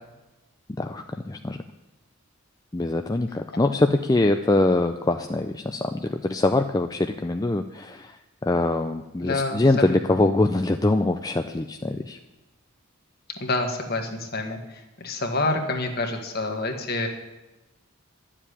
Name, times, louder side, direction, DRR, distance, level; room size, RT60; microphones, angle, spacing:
voice 1, 0.8-1.6 2.7-8.2 8.4-12.2, left 2 dB, 15° left, 6 dB, 0.4 m, -23 dB
voice 2, 9.2-10.2 13.4-17.1, left 2 dB, 45° left, 4 dB, 1.8 m, -28 dB
12.0 x 7.4 x 9.9 m, 1.1 s
head